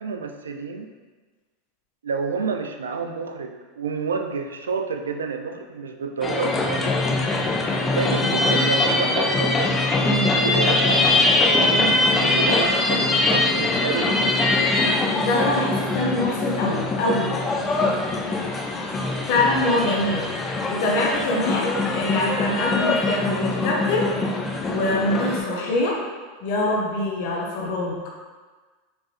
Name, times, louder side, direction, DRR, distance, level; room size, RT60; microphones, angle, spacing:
voice 1, 0.0-0.9 2.0-7.2 7.9-9.7 10.3-11.0 11.4-14.4, right 5 dB, 85° right, 5 dB, 0.3 m, -29 dB
sound 1, 6.2-25.4, left 2 dB, 20° left, 0.8 m, -22 dB
voice 2, 10.0-10.4 15.2-17.4 19.3-20.3 20.7-24.1 24.6-26.0 26.4-28.0, left 2 dB, 60° left, -1 dB, 0.8 m, -24 dB
4.4 x 2.9 x 3.2 m, 1.4 s
hypercardioid pair, 95°, 0 cm